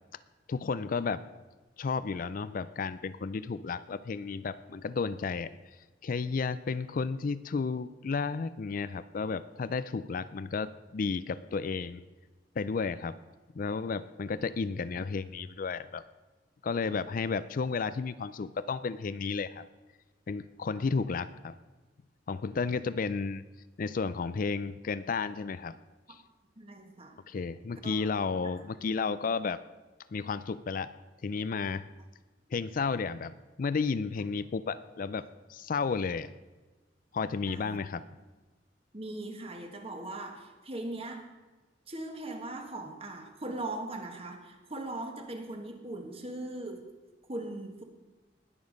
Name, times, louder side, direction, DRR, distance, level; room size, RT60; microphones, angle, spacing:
voice 1, 0.5-1.3 1.8-5.5 6.0-12.0 12.6-13.2 13.5-16.0 16.6-19.7 20.3-21.6 22.3-23.4 23.8-25.8 26.1-26.2 27.3-29.6 30.1-30.9 31.2-31.9 32.5-36.3 37.1-38.0, left 4 dB, 50° left, 15 dB, 0.4 m, -32 dB
voice 2, 26.6-27.2 27.8-28.1 28.4-28.5 34.1-34.2 37.4-37.8 38.9-41.3 41.9-46.9 47.3-47.8, right 2 dB, 35° right, 4 dB, 1.6 m, -40 dB
19.5 x 7.0 x 5.3 m, 1.2 s
head